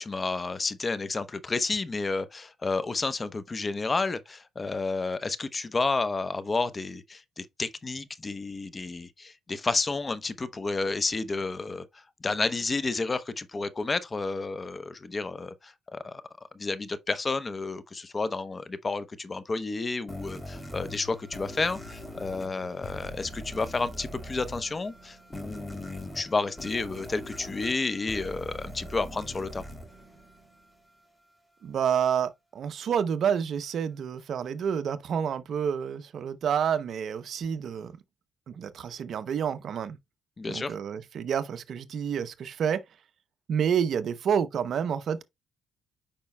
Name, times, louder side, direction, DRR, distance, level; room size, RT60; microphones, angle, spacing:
voice 1, 0.0-16.2 16.5-29.6 40.4-40.7, left 3 dB, 30° left, 0.8 m, -31 dB
sound 1, 20.1-30.9, equal, 10° left, 2.7 m, -42 dB
sound 2, 20.6-27.5, left 12 dB, 65° left, 2.3 m, -54 dB
voice 2, 31.6-37.9 38.5-40.0 40.5-42.8 43.5-45.2, right 8 dB, 65° right, 0.7 m, -29 dB
8.7 x 5.4 x 2.2 m
cardioid pair, 90°, 0 cm